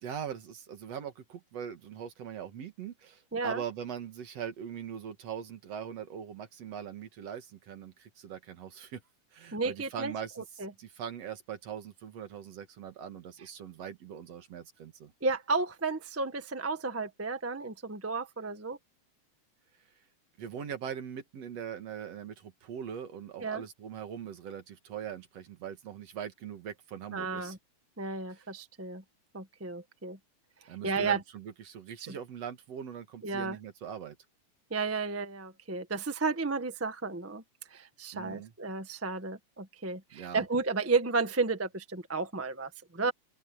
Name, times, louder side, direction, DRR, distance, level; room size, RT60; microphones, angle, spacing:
voice 1, 0.0-9.0 9.3-15.1 20.4-27.6 28.3-28.4 30.7-34.2 38.1-38.5 40.1-40.4, right 8 dB, 60° right, 2.8 m, -41 dB
voice 2, 3.3-3.6 9.5-10.1 10.6-10.7 15.2-18.8 23.4-23.6 27.1-27.6 28.0-29.0 29.3-30.2 30.8-31.2 32.1-32.2 33.2-33.6 34.7-37.4 37.7-43.1, right 4 dB, 15° right, 0.5 m, -32 dB
open air
omnidirectional pair, 3.4 m